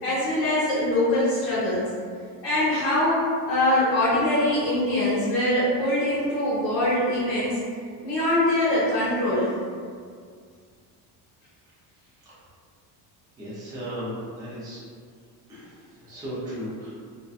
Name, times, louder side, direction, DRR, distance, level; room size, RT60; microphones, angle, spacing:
voice 1, 0.0-1.9 2.4-7.6 8.0-9.5, left 1 dB, 85° left, -11 dB, 1.1 m, -23 dB
voice 2, 13.4-14.8 15.5-16.9, equal, 10° right, -10 dB, 0.4 m, -36 dB
2.7 x 2.1 x 2.3 m, 2.1 s
cardioid pair, 175°, 42 cm